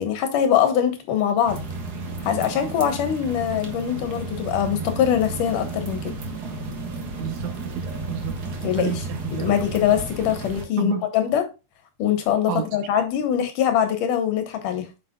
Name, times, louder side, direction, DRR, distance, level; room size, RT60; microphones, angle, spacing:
voice 1, 0.0-1.6 2.2-6.1 8.6-9.1 9.3-11.5 12.0-14.9, left 9 dB, 80° left, 2.9 m, -23 dB
sound 1, 1.4-10.7, right 2 dB, 50° right, 1.2 m, -32 dB
voice 2, 7.2-8.3 8.8-9.6 10.8-11.0 12.5-12.7, right 10 dB, 75° right, 1.9 m, -30 dB
8.5 x 6.8 x 2.3 m
omnidirectional pair, 3.6 m